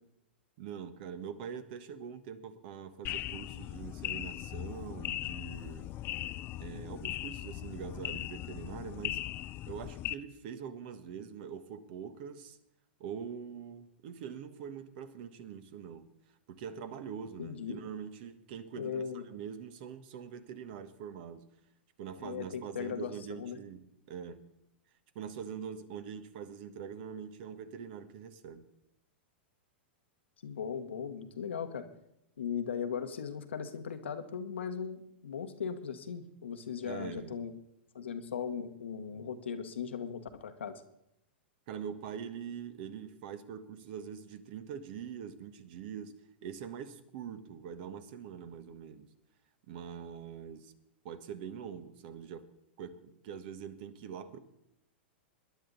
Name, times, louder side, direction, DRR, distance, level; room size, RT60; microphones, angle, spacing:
voice 1, 0.6-5.9 6.6-9.2 9.7-12.6 13.0-16.1 16.5-21.4 22.0-24.4 25.1-28.6 36.8-37.4 41.7-46.1 46.4-49.1 49.7-50.7 51.0-52.5 52.8-54.4, right 7 dB, 55° right, 10 dB, 1.5 m, -43 dB
sound 1, 3.1-10.1, left 15 dB, 35° left, 0.5 m, -39 dB
voice 2, 17.4-17.8 18.8-19.2 22.2-23.6 30.4-31.9 32.4-37.5 37.9-40.8, left 7 dB, 80° left, 7 dB, 1.3 m, -38 dB
21.5 x 10.5 x 4.0 m, 0.80 s
hypercardioid pair, 110°, 6 cm